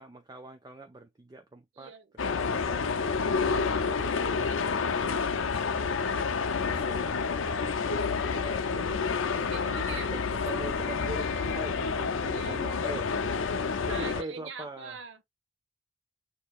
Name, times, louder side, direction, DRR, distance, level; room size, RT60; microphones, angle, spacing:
voice 1, 0.0-3.3 3.7-5.4 6.4-7.1 7.4-9.0 9.9-13.2 13.5-15.0, right 2 dB, 20° right, 0.4 m, -44 dB
voice 2, 1.8-2.1 5.5-6.3 6.7-6.9 9.5-10.1 12.3-12.6 13.9-15.2, right 5 dB, 70° right, 0.9 m, -43 dB
sound 1, 2.2-14.2, left 5 dB, 85° left, 0.6 m, -29 dB
6.6 x 2.9 x 2.4 m
head